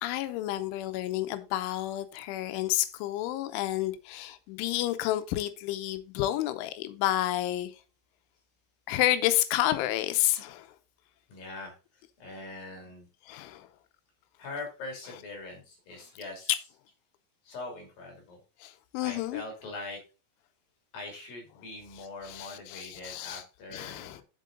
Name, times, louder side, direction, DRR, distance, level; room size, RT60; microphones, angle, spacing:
voice 1, 0.0-7.7 8.9-10.7 13.3-13.7 18.6-19.4 22.0-23.4 23.7-24.2, left 14 dB, 90° left, 3.2 m, -30 dB
voice 2, 11.3-11.7 12.2-13.1 14.4-16.7 17.5-18.4 19.0-20.0 20.9-24.2, left 2 dB, 55° left, 3.9 m, -42 dB
7.6 x 7.4 x 3.7 m
omnidirectional pair, 5.3 m